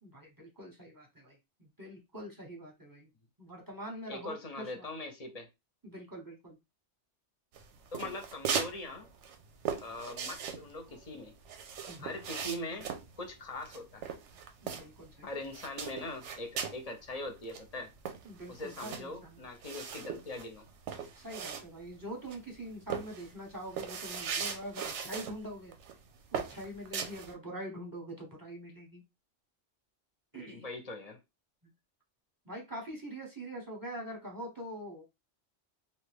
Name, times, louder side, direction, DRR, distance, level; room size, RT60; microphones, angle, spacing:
voice 1, 0.0-3.1 3.4-4.8 5.8-6.6 11.9-12.2 14.6-15.3 18.2-19.4 21.2-25.7 26.3-29.0 30.3-30.6 32.5-35.0, right 1 dB, 20° right, 0.8 m, -44 dB
voice 2, 4.1-5.5 7.9-9.1 9.8-11.3 12.0-12.9 13.2-14.0 15.2-17.9 18.5-20.6 30.4-31.2, left 2 dB, 45° left, 0.6 m, -41 dB
sound 1, 7.5-8.8 9.0-15.1 15.4-16.8 17.2-17.3 17.5-22.0 22.3-22.6 22.9-25.4 25.7-26.0 26.3-27.3, right 7 dB, 85° right, 0.9 m, -38 dB
2.7 x 2.2 x 3.3 m
omnidirectional pair, 1.2 m